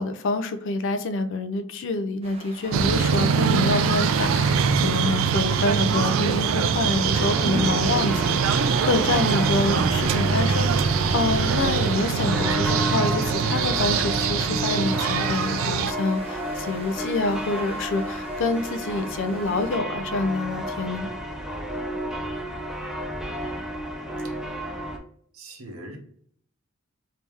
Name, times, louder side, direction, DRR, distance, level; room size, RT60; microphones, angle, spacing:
voice 1, 0.0-21.1, left 2 dB, 65° left, 10 dB, 0.4 m, -27 dB
sound 1, 2.2-19.8, right 2 dB, 30° right, 0.7 m, -43 dB
sound 2, 2.7-15.9, right 6 dB, 70° right, 0.3 m, -23 dB
sound 3, 7.1-25.0, equal, 5° right, 0.4 m, -32 dB
voice 2, 21.8-22.2 25.3-26.0, right 1 dB, 90° right, 3 dB, 0.9 m, -42 dB
3.2 x 2.8 x 3.4 m, 0.63 s
head